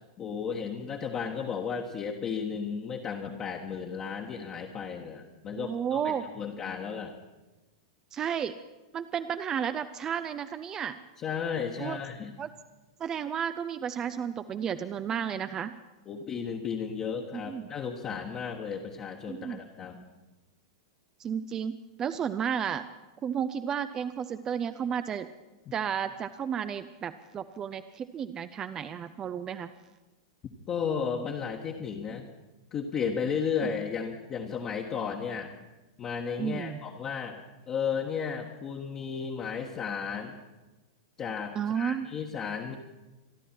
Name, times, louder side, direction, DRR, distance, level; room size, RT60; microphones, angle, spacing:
voice 1, 0.2-7.1 11.2-12.3 16.1-20.0 30.7-32.2 32.7-35.5 36.0-37.4 37.7-40.4 41.2-42.8, left 6 dB, 30° left, 0 dB, 1.4 m, -34 dB
voice 2, 5.5-6.3 8.1-8.6 8.9-11.0 11.8-12.0 12.4-12.5 13.0-15.7 17.4-17.7 19.3-19.6 21.2-22.9 23.2-25.3 25.7-29.7 33.6-33.7 36.4-36.8 41.5-42.1, right 8 dB, 25° right, 11 dB, 0.6 m, -32 dB
27.0 x 11.5 x 4.5 m, 1.1 s
figure-of-eight pair, 95°, 2 cm